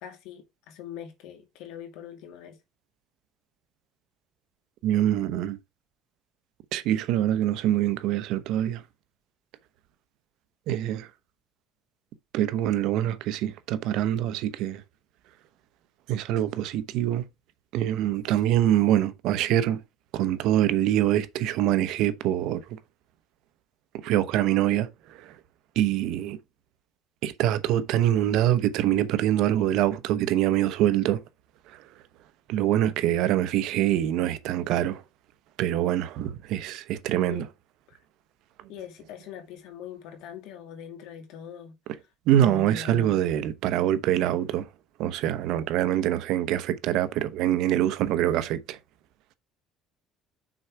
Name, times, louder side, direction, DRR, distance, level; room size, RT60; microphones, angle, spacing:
voice 1, 0.0-2.6 37.3-37.5 37.9-38.0 38.7-42.0 42.4-43.2 43.7-43.9, left 8 dB, 80° left, 2.4 m, -42 dB
voice 2, 4.8-5.6 6.7-8.8 10.7-11.1 12.3-14.8 16.1-17.2 17.7-19.8 20.1-22.6 24.0-24.9 25.2-25.3 25.8-26.4 27.2-31.2 32.5-35.0 35.6-37.5 42.3-44.7 45.0-48.8, right 12 dB, 70° right, 0.9 m, -24 dB
6.3 x 4.5 x 4.7 m
cardioid pair, 135°, 0 cm